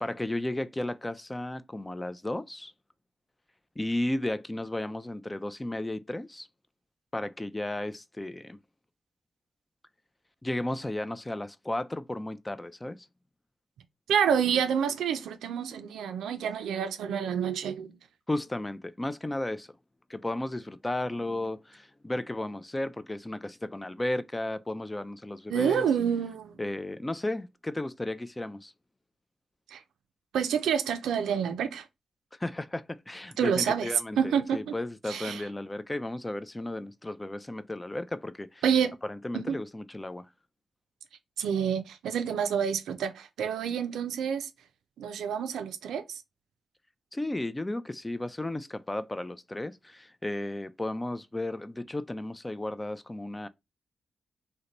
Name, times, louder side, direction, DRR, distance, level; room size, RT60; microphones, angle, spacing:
voice 1, 0.0-2.7 3.8-6.5 7.1-8.6 10.4-13.1 18.3-19.7 20.1-25.8 26.6-28.7 32.4-38.6 39.0-40.3 47.1-53.5, left 1 dB, 20° left, 0.4 m, -34 dB
voice 2, 14.1-17.9 25.5-26.6 29.7-29.8 30.3-31.9 33.4-34.7 35.1-35.4 38.6-38.9 39.3-39.6 41.4-44.5 45.0-46.2, right 8 dB, 85° right, 0.4 m, -28 dB
2.9 x 2.2 x 3.8 m
supercardioid pair, 40°, 0 cm